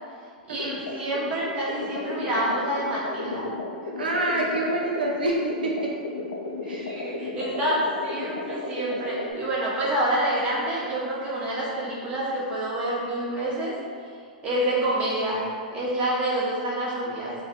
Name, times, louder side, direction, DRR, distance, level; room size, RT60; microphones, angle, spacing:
voice 1, 0.5-3.4 6.6-13.7 14.4-15.4 15.7-17.3, right 1 dB, 25° right, -7 dB, 0.9 m, -27 dB
sound 1, 0.6-9.3, left 3 dB, 85° left, 0.4 m, -34 dB
voice 2, 4.0-5.7 6.6-6.9, right 1 dB, 85° right, -2 dB, 0.4 m, -26 dB
3.2 x 2.2 x 2.9 m, 2.2 s
hypercardioid pair, 105°, 5 cm